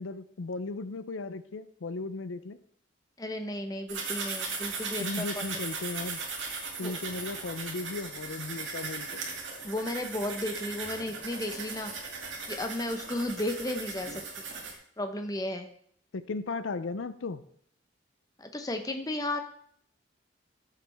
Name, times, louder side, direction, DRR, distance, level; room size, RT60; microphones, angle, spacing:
voice 1, 0.0-2.6 5.0-6.2 6.8-9.2 16.1-17.4, left 3 dB, 80° left, 13 dB, 0.5 m, -36 dB
voice 2, 3.2-5.4 6.8-6.9 9.6-11.9 12.5-14.5 15.0-15.7 18.4-19.4, left 1 dB, 20° left, 6 dB, 0.9 m, -34 dB
sound 1, 3.9-14.7, right 4 dB, 70° right, 2.4 m, -38 dB
14.0 x 7.5 x 3.5 m, 0.63 s
head